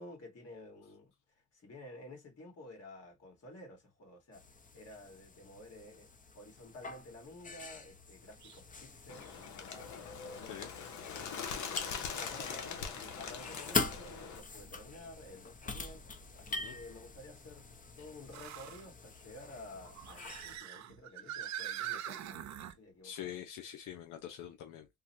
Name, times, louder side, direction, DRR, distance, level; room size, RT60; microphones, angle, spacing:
voice 1, 0.0-6.1 6.4-9.9 10.2-10.7 11.4-16.0 16.3-17.7 18.0-23.4, left 1 dB, 55° left, 2.0 m, -52 dB
sound 1, 4.3-20.6, left 3 dB, 25° left, 0.7 m, -43 dB
sound 2, 8.4-8.6 9.2-9.3 11.4-11.5 15.0-15.1 18.3-18.9 19.8-22.8, right 11 dB, 65° right, 0.6 m, -43 dB
Bird, 9.1-14.4, left 6 dB, 70° left, 0.9 m, -42 dB
voice 2, 23.0-24.9, left 10 dB, 90° left, 0.6 m, -44 dB
3.6 x 2.2 x 2.6 m
cardioid pair, 90°, 30 cm